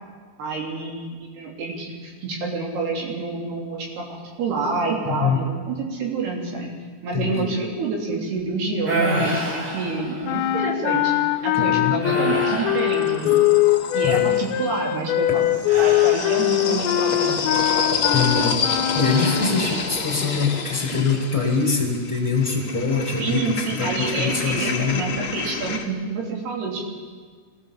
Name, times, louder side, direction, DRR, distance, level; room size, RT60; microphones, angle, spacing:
voice 1, 0.4-6.7 7.0-11.1 11.4-13.5 13.9-15.4 15.8-18.0 23.2-26.8, right 3 dB, 65° right, -1 dB, 5.2 m, -28 dB
voice 2, 5.1-5.4 7.1-7.5 11.5-11.9 13.2-13.4 14.0-14.3 18.1-18.6 18.9-23.4 23.7-25.1, left 4 dB, 5° right, 0 dB, 3.9 m, -24 dB
sound 1, 8.8-10.6 11.1-11.4 12.0-13.8 15.6-17.0 19.0-20.1 20.6-21.0, right 2 dB, 45° right, 7.3 m, -29 dB
sound 2, 10.2-19.8, left 15 dB, 90° left, 3.1 m, -22 dB
sound 3, 12.2-14.6 15.4-25.8, left 5 dB, 50° left, 1.5 m, -29 dB
23.0 x 16.0 x 7.2 m, 1.5 s
omnidirectional pair, 5.0 m